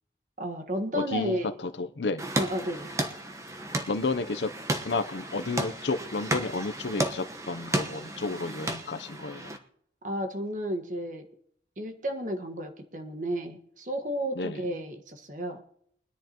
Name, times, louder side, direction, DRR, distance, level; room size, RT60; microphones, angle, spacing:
voice 1, 0.4-1.5 2.3-2.9 10.0-11.3 11.8-15.6, equal, 45° right, 1.5 m, -32 dB
voice 2, 0.9-2.3 3.9-4.5 4.8-9.5 14.3-14.6, left 3 dB, 85° left, 0.7 m, -31 dB
sound 1, 2.2-9.6, right 1 dB, 15° right, 1.1 m, -33 dB
23.0 x 10.5 x 3.0 m
head